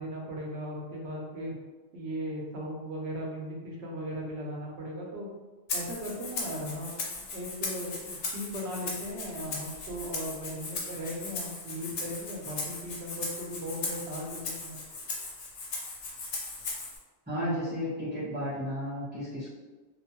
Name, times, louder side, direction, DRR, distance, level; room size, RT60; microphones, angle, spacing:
voice 1, 0.0-1.5 1.9-5.3 5.7-14.8, equal, 75° right, -1 dB, 0.9 m, -37 dB
Rattle (instrument), 5.7-17.0, left 3 dB, 85° left, 0.9 m, -37 dB
voice 2, 17.3-19.5, equal, 10° right, -14 dB, 0.5 m, -33 dB
2.5 x 2.2 x 2.8 m, 1.2 s
omnidirectional pair, 1.1 m